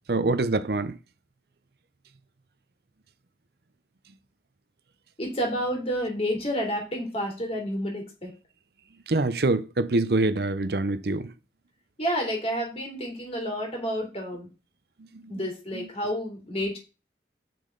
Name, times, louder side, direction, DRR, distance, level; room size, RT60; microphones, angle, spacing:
voice 1, 0.1-0.9 9.1-11.3 15.8-15.9, right 2 dB, 60° right, 0.7 m, -25 dB
voice 2, 5.2-8.3 12.0-14.5 15.3-16.8, equal, 35° left, 3.2 m, -30 dB
8.5 x 6.4 x 3.9 m
head